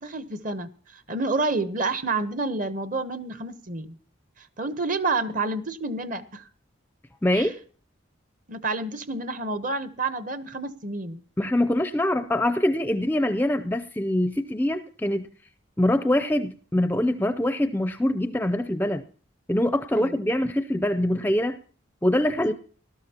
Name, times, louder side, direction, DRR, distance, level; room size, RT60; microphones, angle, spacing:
voice 1, 0.0-4.0 4.4-6.4 7.3-7.5 8.5-11.2 19.9-20.2, right 3 dB, 40° right, 13 dB, 0.9 m, -29 dB
voice 2, 7.2-7.6 11.4-15.3 15.8-19.0 19.5-21.6 22.0-22.5, left 1 dB, 10° left, 10 dB, 0.5 m, -24 dB
18.5 x 12.5 x 2.9 m, 0.42 s
head